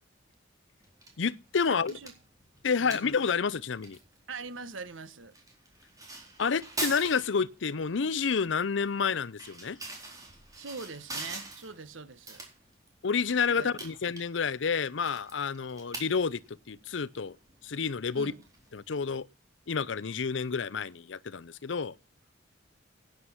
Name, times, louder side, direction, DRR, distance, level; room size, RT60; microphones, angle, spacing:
sound 1, 0.8-19.2, right 2 dB, 20° right, 4.1 m, -45 dB
voice 1, 1.2-1.9 2.6-4.0 6.4-9.8 13.0-17.4 17.6-18.3 18.7-19.3 19.7-21.9, left 5 dB, 70° left, 0.6 m, -29 dB
voice 2, 1.7-2.1 2.8-3.0 4.3-5.3 10.5-12.4 13.6-13.7 18.1-18.4, right 4 dB, 90° right, 1.3 m, -42 dB
11.5 x 9.7 x 5.8 m
head